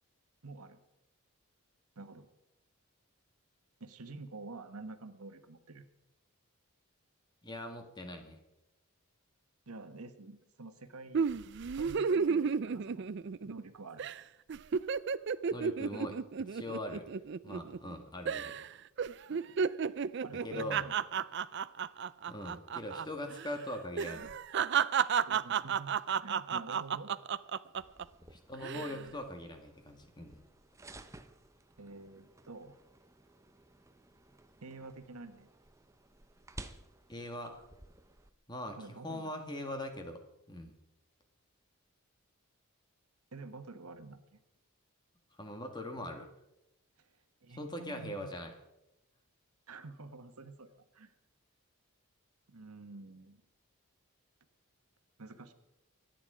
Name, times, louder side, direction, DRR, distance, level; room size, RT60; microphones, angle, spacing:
voice 1, 0.4-0.8 1.9-2.3 3.8-5.9 9.7-11.3 11.8-13.1 13.4-14.1 19.3-19.6 20.2-20.9 25.3-25.9 26.2-27.1 28.7-29.2 31.8-32.8 34.6-35.5 38.8-39.3 43.3-44.2 47.0-47.1 47.4-48.3 49.7-51.1 52.5-53.4 55.2-55.5, right 3 dB, 85° right, 9 dB, 1.3 m, -48 dB
voice 2, 7.4-8.4 15.5-17.1 17.4-18.6 20.4-20.9 22.3-24.3 28.3-30.4 37.1-37.6 38.5-40.2 40.5-40.8 45.4-46.3 47.6-48.5, left 1 dB, 20° left, 5 dB, 1.8 m, -41 dB
sound 1, 11.1-13.7 14.0-14.2 14.5-17.9 18.3-18.7 19.0-23.1 23.3-23.5 24.0-28.0 28.5-29.0, right 6 dB, 50° right, 0.4 m, -32 dB
sound 2, 27.7-38.3, right 2 dB, 15° right, 0.7 m, -55 dB
24.5 x 9.3 x 5.0 m, 0.93 s
head